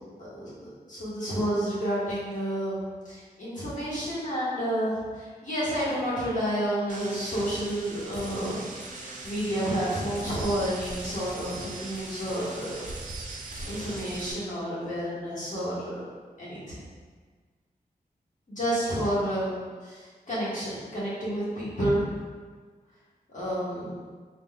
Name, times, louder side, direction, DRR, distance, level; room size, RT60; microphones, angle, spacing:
voice 1, 0.2-8.6 9.2-12.9 13.2-13.4 13.6-16.1 16.4-16.8 18.5-19.5 19.8-22.1 23.3-23.9, equal, 50° left, -10 dB, 1.2 m, -30 dB
sound 1, 6.9-14.3, right 2 dB, 55° right, 0.4 m, -40 dB
3.7 x 2.2 x 2.2 m, 1.5 s
wide cardioid pair, 120°, 16 cm